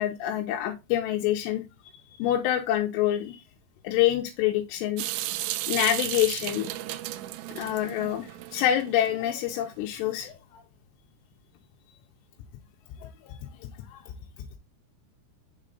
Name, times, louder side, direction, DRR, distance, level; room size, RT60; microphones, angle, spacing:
voice 1, 0.0-1.6 2.2-3.4 3.8-5.0 5.7-6.7 7.6-10.6 13.0-13.4 13.9-14.1, left 12 dB, 85° left, 2.8 m, -27 dB
Water tap faucet / Sink (filling or washing) / Drip, 5.0-9.1, right 15 dB, 85° right, 2.1 m, -34 dB
6.5 x 4.1 x 3.7 m
omnidirectional pair, 4.8 m